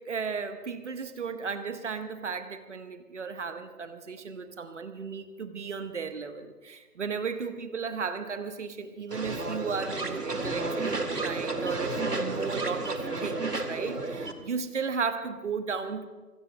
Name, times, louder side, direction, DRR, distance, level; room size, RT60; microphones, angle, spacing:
voice 1, 0.0-16.1, right 5 dB, 50° right, 9 dB, 1.3 m, -35 dB
sound 1, 9.1-14.3, right 3 dB, 85° right, 2.0 m, -32 dB
26.0 x 21.0 x 2.3 m, 1.3 s
figure-of-eight pair, 145°, 46 cm